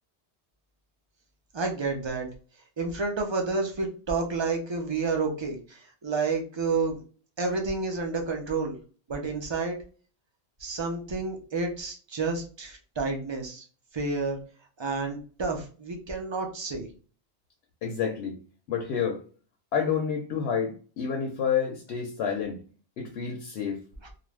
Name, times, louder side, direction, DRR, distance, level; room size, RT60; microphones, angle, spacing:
voice 1, 1.5-2.3 2.8-7.0 7.4-8.8 9.1-9.8 10.6-13.6 13.9-14.4 14.8-16.9, right 4 dB, 45° right, 0.4 m, -30 dB
voice 2, 17.8-18.4 18.7-19.2 19.7-22.6 23.0-23.8, left 7 dB, 75° left, 0.8 m, -29 dB
2.4 x 2.1 x 3.2 m
omnidirectional pair, 1.1 m